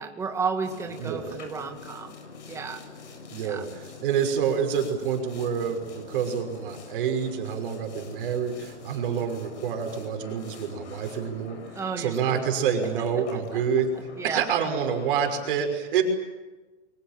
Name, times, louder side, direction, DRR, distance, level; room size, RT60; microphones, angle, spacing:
voice 1, 0.0-2.2 2.5-2.8 3.4-3.6 11.8-12.5 14.2-14.5, right 5 dB, 10° right, 4 dB, 1.9 m, -32 dB
Boat Water vehicle, 0.6-15.5, left 5 dB, 80° left, 8.0 m, -44 dB
voice 2, 1.0-1.4 3.3-11.6 12.0-13.9 14.2-16.0, right 7 dB, 50° right, 4 dB, 6.0 m, -27 dB
29.0 x 24.5 x 7.6 m, 1.2 s
hypercardioid pair, 170°, 35 cm